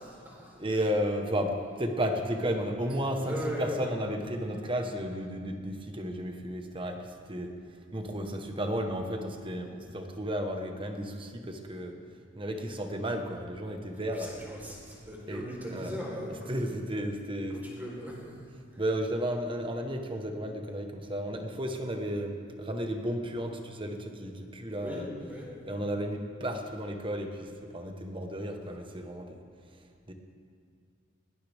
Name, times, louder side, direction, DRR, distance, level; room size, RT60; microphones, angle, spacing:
voice 1, 0.1-0.5 3.2-4.0 14.1-16.9 17.5-18.1 18.7-18.8 24.8-25.0 25.3-25.8, equal, 10° right, -4 dB, 4.0 m, -39 dB
voice 2, 0.6-7.5 7.9-11.9 12.4-14.5 15.3-15.9 16.5-17.6 18.8-25.1 25.7-29.4 30.1-30.2, equal, 25° right, 4 dB, 1.3 m, -33 dB
20.0 x 18.5 x 3.6 m, 2.2 s
head